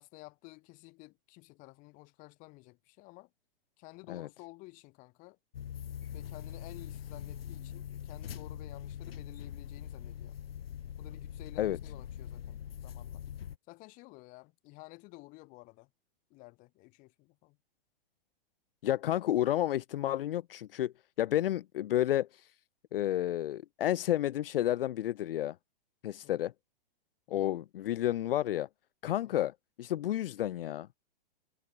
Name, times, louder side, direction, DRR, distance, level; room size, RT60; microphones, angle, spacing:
voice 1, 0.0-3.3 3.8-5.4 6.1-10.4 11.0-13.2 13.7-15.9 16.3-17.6 26.2-26.4 27.3-27.5 29.2-29.4, left 24 dB, 30° left, 3.2 m, -53 dB
sound 1, 5.5-13.6, left 9 dB, 90° left, 2.5 m, -43 dB
voice 2, 18.8-22.5 22.9-25.6 26.0-26.5 27.3-28.7 29.0-30.9, left 13 dB, 70° left, 0.7 m, -31 dB
hypercardioid pair, 165°, 29 cm